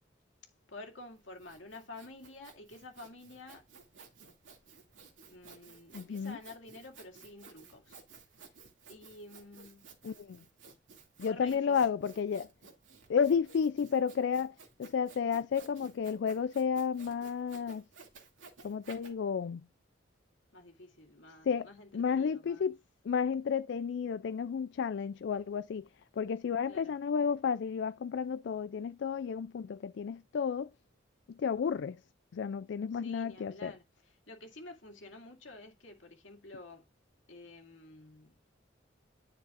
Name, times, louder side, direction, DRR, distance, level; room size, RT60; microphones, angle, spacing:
voice 1, 0.7-3.7 5.3-8.0 8.4-8.6 8.9-9.9 11.2-11.8 20.5-22.7 26.7-26.9 32.9-36.9 37.3-38.4, left 2 dB, 85° left, 2.3 m, -50 dB
Sawing, 1.1-19.1, right 4 dB, 90° right, 2.6 m, -56 dB
voice 2, 5.9-6.4 10.0-10.4 11.2-12.5 13.1-17.8 18.6-19.7 21.5-21.7 21.9-22.8 23.1-25.9 26.2-30.7 31.4-32.0 32.3-33.7, left 6 dB, 65° left, 0.3 m, -32 dB
10.5 x 6.6 x 2.5 m
head